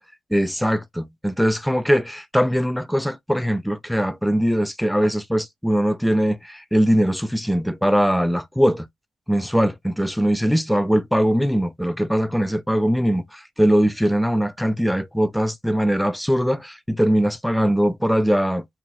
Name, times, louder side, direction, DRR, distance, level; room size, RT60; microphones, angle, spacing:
voice 1, 0.3-8.9 9.3-18.7, equal, ahead, 0.4 m, -21 dB
5.8 x 2.5 x 2.5 m
cardioid pair, 125°, 3 cm